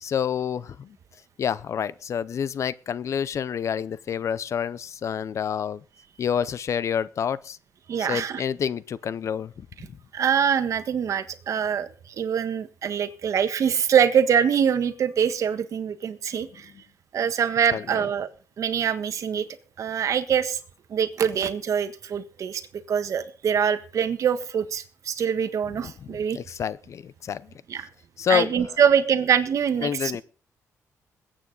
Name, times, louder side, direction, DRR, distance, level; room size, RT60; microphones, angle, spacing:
voice 1, 0.0-1.0 1.4-5.8 6.2-7.6 8.0-9.7 17.7-18.1 25.8-27.5 28.2-28.6 29.8-30.2, left 8 dB, 55° left, 0.7 m, -28 dB
voice 2, 7.9-8.4 10.1-16.7 17.1-18.3 18.6-19.5 19.8-20.6 20.9-26.4 27.7-27.9 28.3-29.9, right 8 dB, 65° right, 1.5 m, -24 dB
21.5 x 8.9 x 4.0 m
cardioid pair, 100°, 6 cm